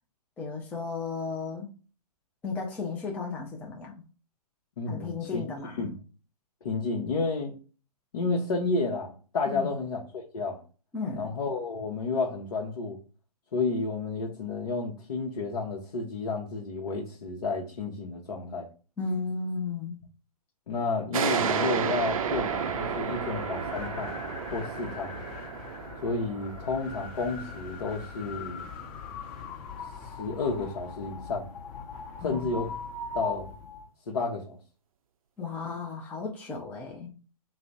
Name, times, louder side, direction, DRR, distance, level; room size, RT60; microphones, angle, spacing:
voice 1, 0.4-1.7 2.4-4.0 4.9-5.9 9.5-9.8 10.9-11.3 19.0-20.0 32.2-32.6 35.4-37.1, left 4 dB, 10° left, 0.5 m, -34 dB
voice 2, 4.8-5.4 5.8-6.0 6.6-7.5 8.1-10.6 11.1-13.0 13.5-18.7 20.7-24.1 24.5-25.1 26.0-28.7 30.2-31.5 32.2-32.7 33.1-33.5 34.1-34.6, left 3 dB, 55° left, 0.8 m, -31 dB
sound 1, 21.1-28.3, right 7 dB, 60° right, 0.5 m, -32 dB
sound 2, 21.7-33.9, left 5 dB, 30° left, 1.0 m, -41 dB
3.1 x 2.0 x 3.8 m
figure-of-eight pair, 125°, 20 cm